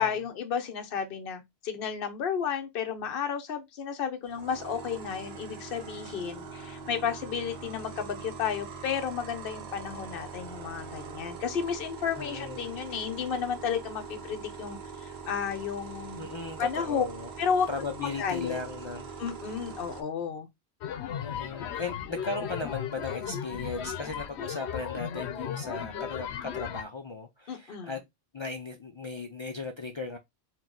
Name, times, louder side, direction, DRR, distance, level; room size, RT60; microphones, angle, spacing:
voice 1, 0.0-16.3 16.6-17.0 17.4-17.7 18.0-18.6 19.2-20.5 27.5-28.0, left 7 dB, 60° left, 0.9 m, -32 dB
sound 1, 4.2-20.0, right 5 dB, 70° right, 1.0 m, -43 dB
voice 2, 12.2-12.8 16.2-17.3 17.7-19.1 21.1-28.0 28.3-30.2, left 3 dB, 45° left, 0.3 m, -37 dB
sound 2, 20.8-26.8, left 9 dB, 90° left, 0.9 m, -36 dB
4.4 x 2.3 x 3.7 m
omnidirectional pair, 1.1 m